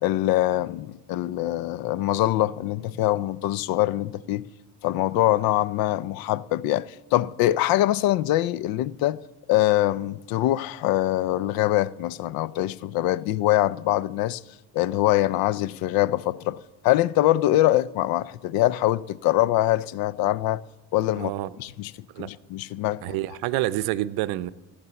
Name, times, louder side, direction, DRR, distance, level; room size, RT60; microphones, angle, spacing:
voice 1, 0.0-4.5 4.8-9.2 9.5-14.4 14.7-20.6 20.9-21.3 21.6-21.9 22.2-23.2, left 15 dB, 70° left, 0.5 m, -23 dB
voice 2, 21.2-21.5 22.1-22.3 23.0-24.5, right 15 dB, 90° right, 0.6 m, -27 dB
15.5 x 8.4 x 6.9 m
cardioid pair, 140°, 36 cm